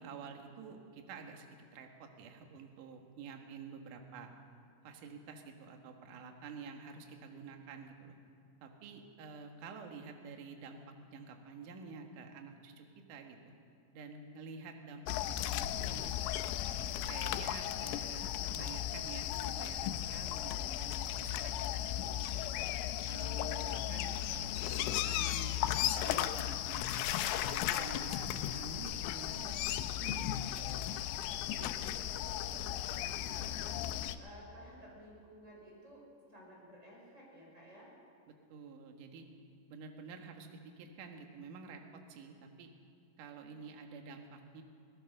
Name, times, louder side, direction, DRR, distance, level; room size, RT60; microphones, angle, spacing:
voice 1, 0.0-1.5 1.7-4.3 4.8-8.2 8.6-10.8 11.1-13.5 13.9-16.1 16.8-22.3 23.1-30.9 31.5-31.7 38.3-39.3 39.7-42.7 43.2-44.6, right 5 dB, 60° right, 3 dB, 2.4 m, -49 dB
sound 1, 15.1-34.2, left 12 dB, 85° left, 3.3 m, -36 dB
voice 2, 31.3-36.0 36.3-37.9, equal, 15° right, -3 dB, 5.5 m, -54 dB
24.5 x 17.5 x 6.6 m, 2.5 s
omnidirectional pair, 5.7 m